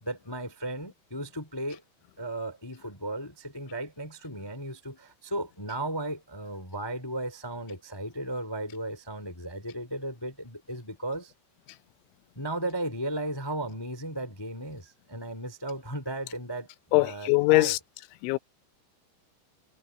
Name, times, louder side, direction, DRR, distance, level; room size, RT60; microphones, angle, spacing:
voice 1, 0.0-1.8 2.2-11.3 12.3-17.7, right 1 dB, 30° left, 0.4 m, -35 dB
voice 2, 16.9-17.8 18.2-18.4, left 23 dB, 85° left, 3.2 m, -22 dB
omnidirectional pair, 5.3 m